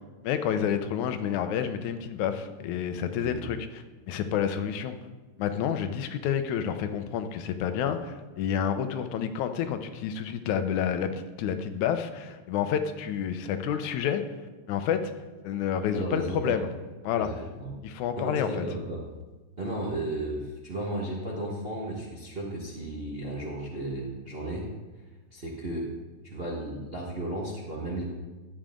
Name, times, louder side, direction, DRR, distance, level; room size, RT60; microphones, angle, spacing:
voice 1, 0.2-3.6 4.1-5.0 5.4-14.2 14.7-15.0 15.4-16.7 17.0-17.3 17.8-18.6, left 8 dB, 85° left, 9 dB, 2.1 m, -29 dB
voice 2, 15.9-16.6 17.2-17.7 18.2-19.0 19.6-24.7 25.3-25.9 26.2-28.0, right 1 dB, 40° right, -3 dB, 0.9 m, -34 dB
12.5 x 8.7 x 3.7 m, 1.2 s
omnidirectional pair, 3.3 m